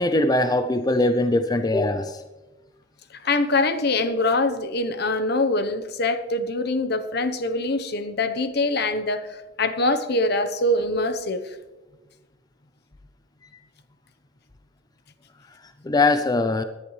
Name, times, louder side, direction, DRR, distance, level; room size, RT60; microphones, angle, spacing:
voice 1, 0.0-2.2 15.8-16.6, left 2 dB, 20° left, 0.5 m, -21 dB
voice 2, 3.1-11.6, left 2 dB, 60° left, 1.0 m, -24 dB
19.0 x 11.0 x 3.2 m
head